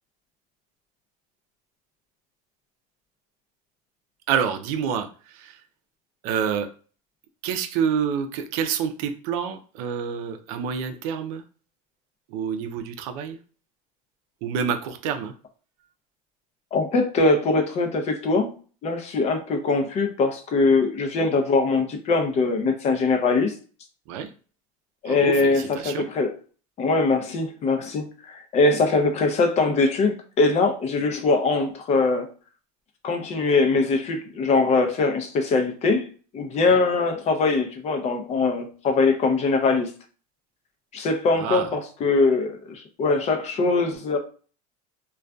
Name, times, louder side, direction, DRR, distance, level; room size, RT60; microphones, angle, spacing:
voice 1, 4.3-5.6 6.2-6.7 7.4-11.4 12.3-13.4 14.4-15.3 24.1-24.3 25.0-26.1 36.6-36.8 41.4-41.7, right 7 dB, 75° right, 8 dB, 0.5 m, -28 dB
voice 2, 16.7-18.5 18.8-23.5 25.0-26.3 26.8-32.3 33.0-36.1 36.3-39.9 40.9-44.2, left 3 dB, 35° left, 5 dB, 0.5 m, -22 dB
2.5 x 2.3 x 2.2 m, 0.39 s
supercardioid pair, 125°, 18 cm